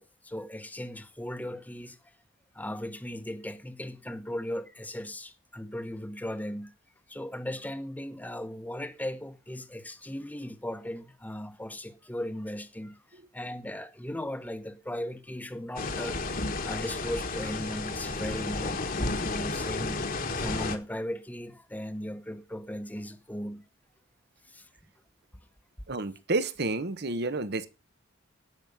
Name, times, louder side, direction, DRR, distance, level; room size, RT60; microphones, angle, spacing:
voice 1, 0.0-2.0 2.5-6.7 7.1-20.1 20.4-23.6 24.5-24.7, left 1 dB, 10° left, 1.1 m, -37 dB
sound 1, 15.8-20.8, left 3 dB, 45° left, 1.6 m, -32 dB
voice 2, 25.9-27.7, right 2 dB, 55° right, 1.1 m, -30 dB
16.0 x 6.3 x 5.3 m
head